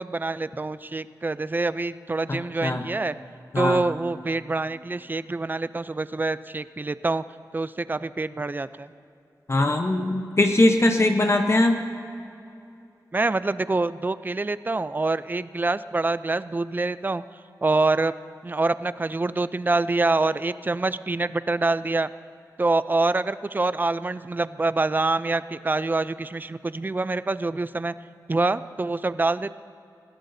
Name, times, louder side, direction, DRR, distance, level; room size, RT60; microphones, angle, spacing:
voice 1, 0.0-3.2 3.6-7.2 7.5-8.9 13.1-17.2 17.6-18.1 18.4-22.1 22.6-27.9 28.3-29.5, right 3 dB, 25° right, 15 dB, 0.4 m, -26 dB
voice 2, 2.3-2.8 3.5-3.8 9.5-11.8, left 2 dB, 40° left, 4 dB, 0.8 m, -21 dB
21.5 x 15.5 x 2.7 m, 2.6 s
wide cardioid pair, 75°, 7 cm